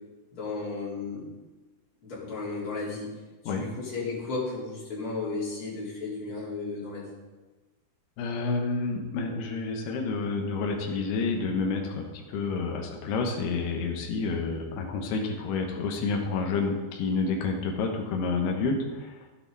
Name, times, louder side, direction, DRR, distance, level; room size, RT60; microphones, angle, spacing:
voice 1, 0.3-1.2 2.0-3.1 3.4-7.1, left 3 dB, 35° left, -8 dB, 4.6 m, -34 dB
voice 2, 8.2-19.2, left 4 dB, 80° left, 2 dB, 3.3 m, -29 dB
12.5 x 9.6 x 4.1 m, 1.2 s
omnidirectional pair, 4.6 m